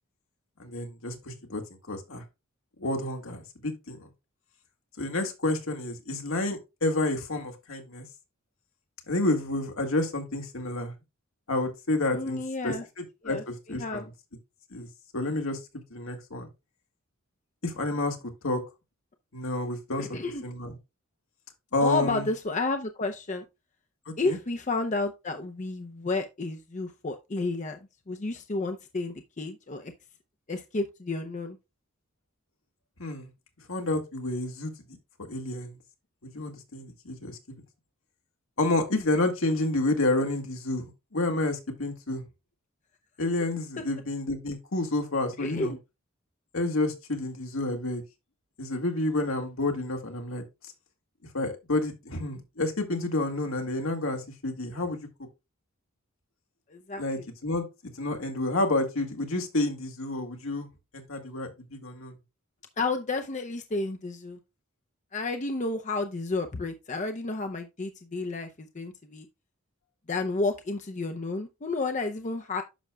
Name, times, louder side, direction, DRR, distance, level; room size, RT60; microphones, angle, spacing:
voice 1, 0.6-1.6 1.9-2.2 2.8-4.1 5.0-8.1 9.1-10.9 11.5-14.1 14.7-14.9 15.1-15.6 15.9-16.5 17.6-18.2 18.4-18.6 19.3-20.8 21.7-22.3 24.1-24.4 33.0-33.3 33.7-34.7 35.3-35.8 36.2-37.6 38.6-42.2 43.2-45.7 46.5-48.0 48.6-50.4 51.3-55.0 57.0-57.6 58.0-60.7 60.9-62.2, left 2 dB, 75° left, 1.7 m, -29 dB
voice 2, 12.1-12.8 13.2-14.1 20.0-20.4 21.8-23.4 24.2-27.8 28.1-29.9 30.5-31.6 45.4-45.8 56.7-57.2 62.8-64.4 65.1-69.3 70.1-72.6, left 3 dB, 35° left, 0.6 m, -31 dB
10.0 x 6.3 x 2.2 m
head